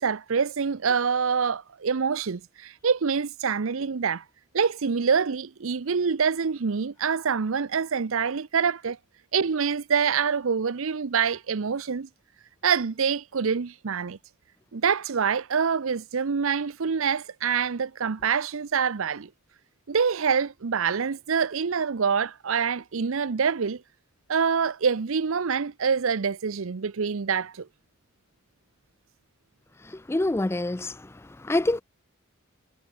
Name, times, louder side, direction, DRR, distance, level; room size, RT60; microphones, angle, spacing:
voice 1, 0.0-4.2 4.5-9.0 9.3-12.1 12.6-14.2 14.7-19.3 19.9-23.8 24.3-27.7, right 6 dB, 70° right, 0.6 m, -26 dB
voice 2, 29.9-31.1 31.4-31.8, left 2 dB, 10° left, 0.4 m, -26 dB
head